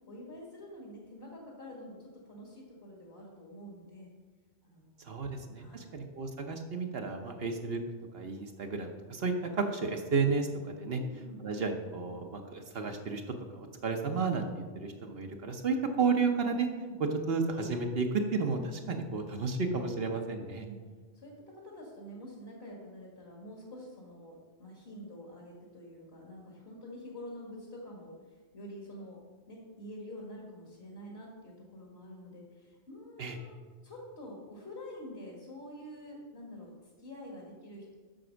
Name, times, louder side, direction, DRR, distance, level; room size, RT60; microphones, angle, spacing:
voice 1, 0.1-4.1 4.6-5.9 7.2-7.4 10.9-11.4 16.8-17.0 20.6-20.8 21.1-29.2 29.5-36.7 37.0-38.0, left 1 dB, 60° left, -2 dB, 1.8 m, -47 dB
voice 2, 5.0-7.8 8.1-11.0 11.4-13.2 13.5-16.7 17.3-20.7 33.2-33.4, right 4 dB, 60° right, 4 dB, 1.0 m, -32 dB
7.7 x 6.0 x 6.2 m, 1.4 s
omnidirectional pair, 1.2 m